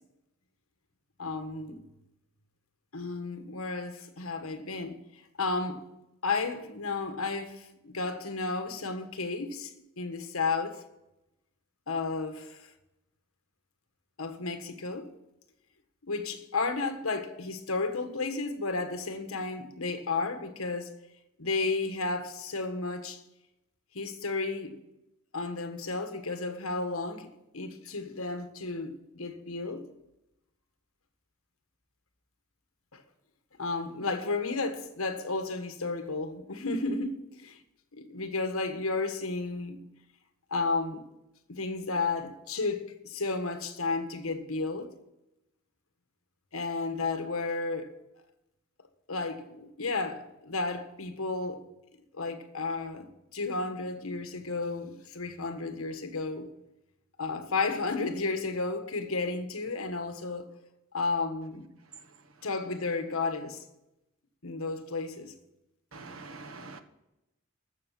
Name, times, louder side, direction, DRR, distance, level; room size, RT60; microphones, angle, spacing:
voice 1, 1.2-1.8 2.9-5.0 5.4-5.8 6.2-10.8 11.9-12.7 14.2-15.1 16.0-20.9 21.4-23.2 23.9-24.8 25.3-29.9 32.9-33.0 33.6-37.6 37.9-39.8 40.5-41.1 41.5-44.9 46.5-47.9 49.1-51.6 52.1-56.5 57.2-60.5 60.9-61.7 62.4-63.6 64.4-65.3, left 3 dB, 75° left, 1.4 m, -33 dB
voice 2, 65.9-66.8, right 3 dB, 70° right, 1.4 m, -44 dB
14.5 x 6.8 x 7.4 m
head